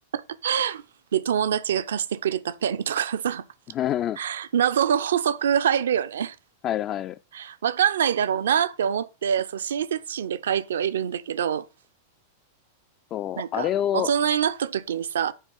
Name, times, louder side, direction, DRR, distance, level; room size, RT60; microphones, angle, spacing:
voice 1, 0.1-0.8 1.1-3.4 4.2-6.4 7.3-11.6 13.4-13.7 13.9-15.3, right 9 dB, 65° right, 0.5 m, -25 dB
voice 2, 3.7-4.2 6.6-7.2 13.1-14.1, left 11 dB, 35° left, 0.3 m, -26 dB
9.2 x 3.5 x 6.1 m
figure-of-eight pair, 90°, 0 cm